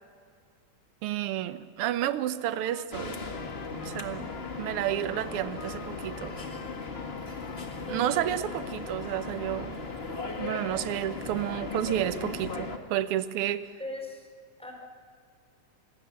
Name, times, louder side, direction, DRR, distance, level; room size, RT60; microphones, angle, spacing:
voice 1, 1.0-3.2 3.8-4.3 4.6-6.3 7.9-9.8 10.4-13.7, right 12 dB, 65° right, 13 dB, 1.4 m, -31 dB
Trumpet, 2.5-8.7 9.0-9.8, left 8 dB, 85° left, 1.0 m, -50 dB
sound 1, 2.9-12.8, left 4 dB, 30° left, 1.3 m, -37 dB
voice 2, 7.8-8.3 13.8-14.3 14.6-14.7, left 1 dB, ahead, 2 dB, 3.9 m, -38 dB
28.0 x 21.0 x 7.6 m, 2.1 s
omnidirectional pair, 3.5 m